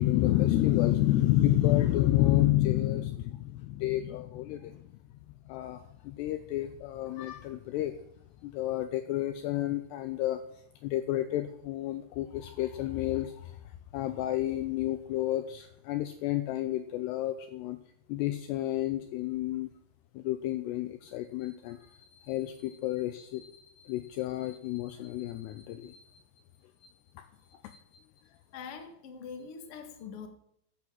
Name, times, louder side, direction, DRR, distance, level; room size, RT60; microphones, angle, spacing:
voice 1, 0.0-4.8 5.5-7.9 8.4-10.4 10.8-13.6 13.9-17.8 18.1-19.7 20.1-26.2 26.8-28.0, left 14 dB, 85° left, 9 dB, 2.4 m, -30 dB
voice 2, 28.2-30.3, left 6 dB, 55° left, 5 dB, 1.6 m, -44 dB
13.5 x 7.8 x 7.5 m, 0.72 s
omnidirectional pair, 5.5 m